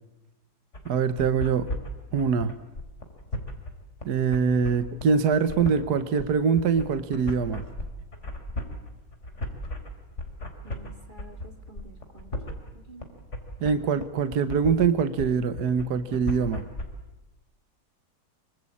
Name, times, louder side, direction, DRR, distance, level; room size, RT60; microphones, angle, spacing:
sound 1, 0.7-16.8, left 1 dB, 35° left, 4.2 m, -36 dB
voice 1, 0.8-1.7 2.1-2.5 4.0-7.6 13.6-16.7, right 6 dB, 55° right, 11 dB, 1.5 m, -24 dB
voice 2, 10.6-13.1, right 1 dB, 25° right, 6 dB, 2.4 m, -50 dB
25.5 x 25.5 x 8.6 m, 0.99 s
omnidirectional pair, 2.2 m